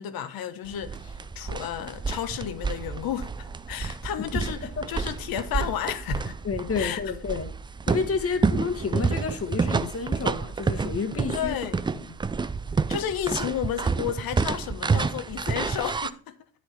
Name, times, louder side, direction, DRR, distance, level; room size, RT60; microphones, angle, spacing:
voice 1, 0.0-6.4 6.7-7.1 8.2-8.4 11.3-11.8 12.9-16.2, left 10 dB, 55° left, 1.2 m, -32 dB
sound 1, 0.7-16.1, right 5 dB, 10° right, 0.4 m, -29 dB
voice 2, 6.4-7.5 7.9-11.6 11.9-12.0, left 5 dB, 35° left, 1.6 m, -30 dB
9.7 x 6.3 x 4.3 m
hypercardioid pair, 65°, 41 cm